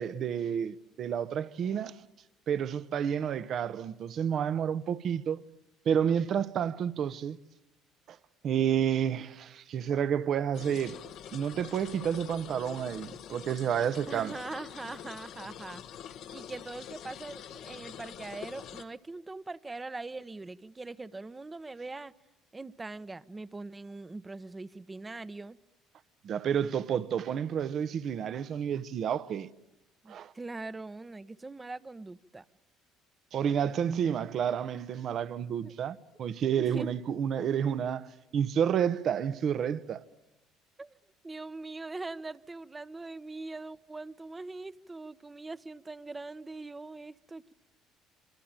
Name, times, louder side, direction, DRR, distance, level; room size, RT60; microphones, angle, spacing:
voice 1, 0.0-1.9 2.5-5.4 5.8-7.4 8.1-8.2 8.4-11.0 11.3-14.3 26.2-29.5 30.1-30.3 33.3-38.1 38.3-40.0, right 8 dB, 55° right, 1.1 m, -30 dB
sound 1, 10.5-18.8, left 9 dB, 65° left, 1.3 m, -45 dB
voice 2, 14.1-15.8 16.3-22.1 22.5-25.6 30.0-32.4 35.6-35.7 36.6-36.9 40.8-41.0 41.2-47.5, right 3 dB, 20° right, 1.0 m, -42 dB
26.5 x 25.0 x 9.0 m
hypercardioid pair, 70°, 0 cm